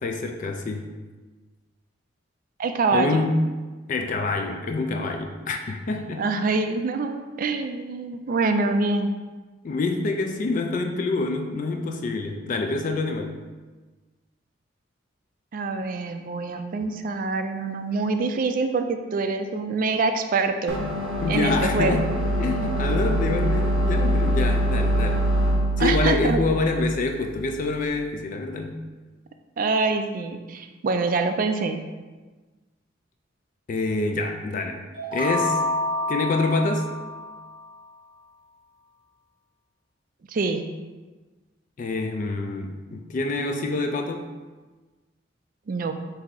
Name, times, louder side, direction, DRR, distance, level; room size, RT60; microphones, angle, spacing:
voice 1, 0.0-0.9 2.9-3.4 3.9-6.2 9.6-13.4 21.2-22.0 22.4-25.3 25.8-28.8 33.7-34.8 35.1-35.6 36.1-36.9 41.8-44.3, left 3 dB, 40° left, 4 dB, 0.3 m, -26 dB
voice 2, 2.6-3.2 6.2-9.1 15.5-20.8 21.3-22.1 25.8-26.4 29.6-31.8 40.3-40.6 45.7-45.9, right 3 dB, 45° right, 7 dB, 0.3 m, -25 dB
sound 1, 20.7-27.8, right 1 dB, 85° right, 0.7 m, -24 dB
sound 2, 34.9-37.7, left 1 dB, 25° right, 0.7 m, -28 dB
4.6 x 2.7 x 3.9 m, 1.3 s
head